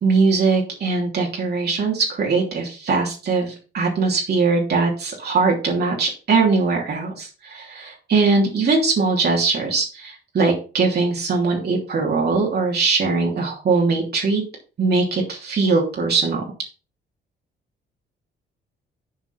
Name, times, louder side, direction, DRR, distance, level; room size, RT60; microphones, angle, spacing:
voice 1, 0.0-14.4 14.8-16.4, right 4 dB, 55° right, -1 dB, 3.0 m, -21 dB
7.3 x 4.7 x 5.8 m, 0.34 s
cardioid pair, 90°, 20 cm